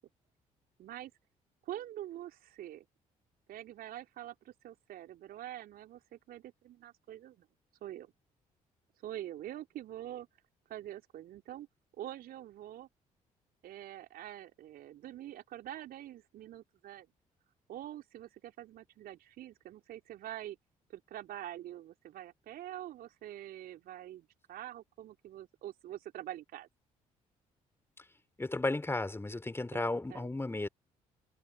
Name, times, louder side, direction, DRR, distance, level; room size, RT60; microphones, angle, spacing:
voice 1, 0.8-1.1 1.6-2.9 3.5-7.5 7.8-8.1 9.0-10.3 10.7-11.7 12.0-12.9 13.6-17.1 17.7-20.6 20.9-26.7 29.7-30.3, right 12 dB, 55° right, 3.3 m, -45 dB
voice 2, 28.4-30.7, left 2 dB, 15° left, 3.2 m, -34 dB
figure-of-eight pair, 45°, 19 cm